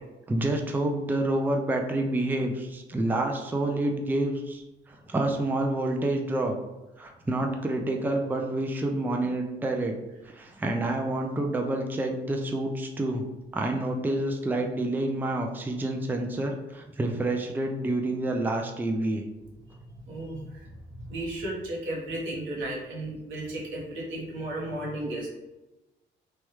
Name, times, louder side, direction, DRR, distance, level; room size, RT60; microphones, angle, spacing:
voice 1, 0.3-6.6 7.0-9.9 10.3-13.2 13.5-19.2, right 1 dB, 10° right, 3 dB, 0.3 m, -28 dB
voice 2, 20.1-20.7 21.0-25.3, right 1 dB, 90° right, -3 dB, 1.0 m, -34 dB
3.1 x 2.2 x 3.0 m, 1.0 s
cardioid pair, 90°, 20 cm